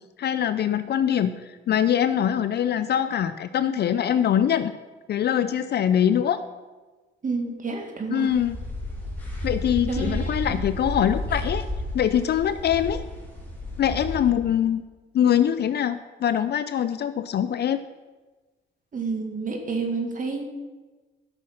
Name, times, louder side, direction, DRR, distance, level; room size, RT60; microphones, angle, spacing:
voice 1, 0.2-1.4 1.7-4.7 5.1-6.4 8.1-8.6 9.4-11.6 11.9-13.0 13.8-14.8 15.1-17.8, left 9 dB, 55° left, 12 dB, 0.5 m, -23 dB
voice 2, 7.2-8.3 9.9-10.2 10.5-10.6 18.9-20.4, right 4 dB, 40° right, 4 dB, 2.1 m, -29 dB
sound 1, 8.3-14.2, left 1 dB, 10° left, 3.5 m, -32 dB
12.5 x 6.2 x 5.9 m, 1.3 s
cardioid pair, 90°, 20 cm